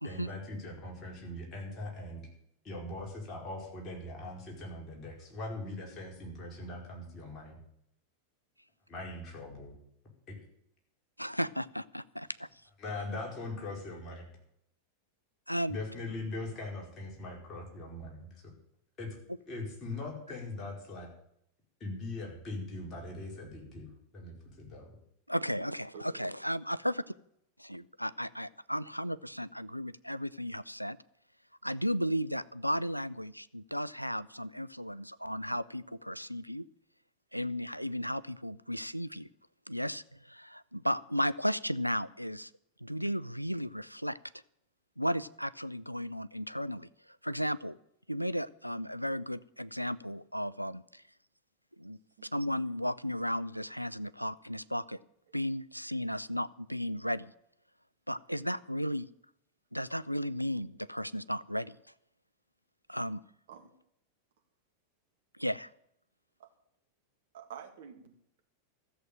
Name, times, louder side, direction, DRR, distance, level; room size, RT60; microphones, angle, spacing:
voice 1, 0.0-2.2 2.6-7.6 8.9-9.8 10.3-10.4 12.8-14.3 15.7-18.4 19.0-19.2 19.5-21.1 21.8-23.9 24.1-25.0, left 2 dB, 25° left, -1 dB, 5.1 m, -41 dB
voice 2, 11.2-12.5 15.5-15.8 25.3-27.1 27.6-31.0 31.6-36.6 37.3-39.3 39.7-42.5 42.8-44.2 45.0-46.9 47.2-47.8 48.1-51.0 51.8-55.0 55.3-57.3 58.1-59.1 59.7-61.8 62.9-63.2 65.4-65.7, equal, 90° left, 17 dB, 0.4 m, -34 dB
voice 3, 25.9-26.3 63.5-63.7 66.4-66.5 67.3-68.4, right 8 dB, 60° right, 4 dB, 2.1 m, -49 dB
14.0 x 7.8 x 8.9 m, 0.74 s
figure-of-eight pair, 90°, 0 cm